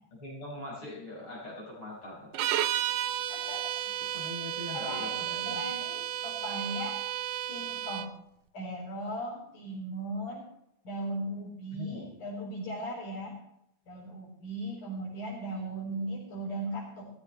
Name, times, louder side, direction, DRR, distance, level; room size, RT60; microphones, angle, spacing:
voice 1, 0.1-2.3 4.1-5.6 11.8-12.1, left 1 dB, 40° left, -4 dB, 5.5 m, -42 dB
sound 1, 2.3-8.1, right 12 dB, 85° right, 1.4 m, -33 dB
voice 2, 3.3-4.3 4.7-5.2 5.5-7.0 7.5-8.1 8.5-10.5 10.8-13.4 13.9-17.1, right 1 dB, 75° left, -5 dB, 5.5 m, -38 dB
19.5 x 15.0 x 3.2 m, 0.79 s
omnidirectional pair, 3.6 m